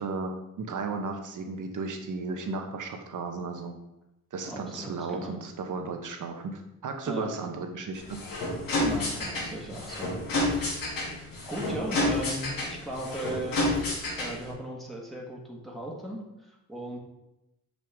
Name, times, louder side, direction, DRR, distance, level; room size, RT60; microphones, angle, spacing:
voice 1, 0.0-3.8 4.3-8.2, right 4 dB, 65° right, 5 dB, 1.1 m, -35 dB
voice 2, 4.4-5.3 7.1-7.3 8.8-10.2 11.5-13.7 14.2-17.0, right 1 dB, ahead, -4 dB, 1.7 m, -37 dB
sound 1, 7.9-14.5, left 2 dB, 85° left, 2.4 m, -30 dB
6.8 x 6.2 x 3.6 m, 0.90 s
cardioid pair, 100°, 34 cm